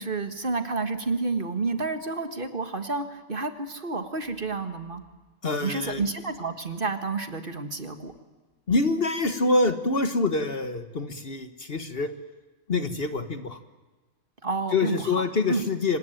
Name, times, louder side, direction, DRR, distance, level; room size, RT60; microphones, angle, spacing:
voice 1, 0.0-5.0 5.6-8.1 14.4-15.2 15.5-15.6, right 3 dB, 40° right, 8 dB, 1.8 m, -30 dB
voice 2, 5.4-6.0 8.7-12.1 12.7-13.6 14.7-16.0, left 3 dB, 45° left, 9 dB, 1.4 m, -26 dB
25.0 x 19.5 x 9.1 m, 1.2 s
omnidirectional pair, 1.4 m